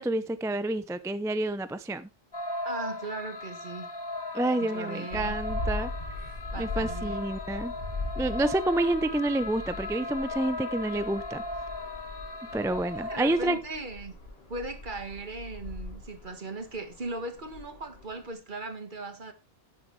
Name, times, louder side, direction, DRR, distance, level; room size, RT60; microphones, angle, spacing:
voice 1, 0.0-2.1 4.3-5.9 6.6-7.7 8.2-11.4 12.5-13.6, right 1 dB, 5° right, 0.3 m, -29 dB
sound 1, 2.3-13.6, left 2 dB, 25° left, 0.9 m, -37 dB
voice 2, 2.6-3.9 4.6-5.4 6.5-7.3 13.1-14.1 14.5-19.3, right 2 dB, 50° right, 1.7 m, -38 dB
sound 2, 5.1-18.3, left 2 dB, 70° left, 2.4 m, -40 dB
11.0 x 9.8 x 3.2 m
omnidirectional pair, 1.1 m